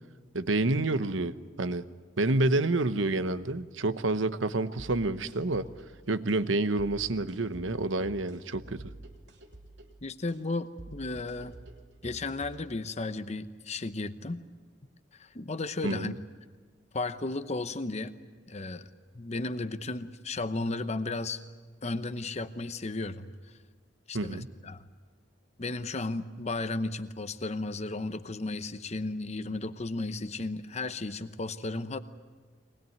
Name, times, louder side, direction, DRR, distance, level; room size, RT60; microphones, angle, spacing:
voice 1, 0.3-1.8 2.2-5.7 6.1-8.9 15.8-16.1 24.1-24.5, right 2 dB, 85° right, 12 dB, 1.0 m, -28 dB
sound 1, 4.8-12.8, right 1 dB, 65° right, 3.1 m, -49 dB
voice 2, 10.0-11.6 12.0-14.4 15.1-16.1 16.9-18.1 18.5-18.9 19.1-21.4 21.8-23.3 24.1-24.8 25.6-32.0, left 2 dB, 35° left, 11 dB, 0.8 m, -34 dB
23.0 x 20.5 x 9.3 m, 1.5 s
head